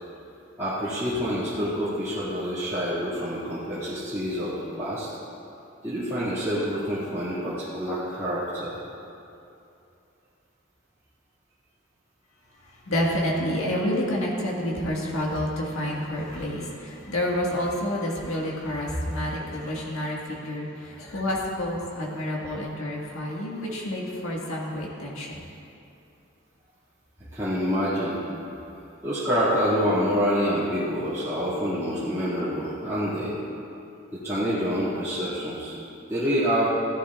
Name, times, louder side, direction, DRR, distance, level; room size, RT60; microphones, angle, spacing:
voice 1, 0.6-5.1 5.8-8.7 27.3-28.2 29.0-33.3 34.1-35.7 36.1-36.7, equal, 15° right, -14 dB, 2.1 m, -27 dB
voice 2, 12.7-25.5, left 1 dB, 90° left, -3 dB, 1.7 m, -29 dB
15.5 x 11.5 x 2.4 m, 2.7 s
head